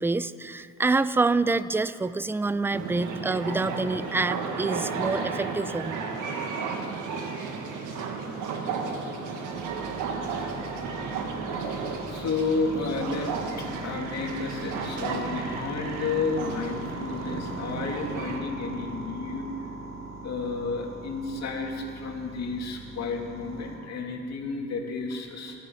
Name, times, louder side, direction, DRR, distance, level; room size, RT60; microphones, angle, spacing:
voice 1, 0.0-6.0, right 3 dB, 10° right, 15 dB, 0.4 m, -27 dB
sound 1, 2.7-18.4, right 5 dB, 90° right, 1.6 m, -33 dB
sound 2, 9.6-23.8, right 3 dB, 60° right, 2.7 m, -41 dB
voice 2, 11.4-19.5 20.2-25.6, left 4 dB, 60° left, 1 dB, 2.5 m, -32 dB
17.0 x 13.0 x 5.7 m, 2.8 s
cardioid pair, 90°, 30 cm